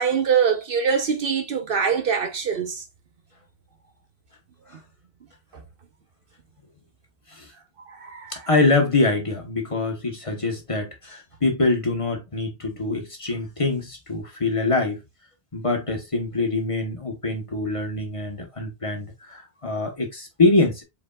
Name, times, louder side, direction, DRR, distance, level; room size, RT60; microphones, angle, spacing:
voice 1, 0.0-2.8 7.9-8.4, right 6 dB, 60° right, 0.9 m, -23 dB
voice 2, 8.3-15.0 15.5-20.8, left 3 dB, 30° left, 1.1 m, -24 dB
4.9 x 4.1 x 2.3 m
omnidirectional pair, 1.1 m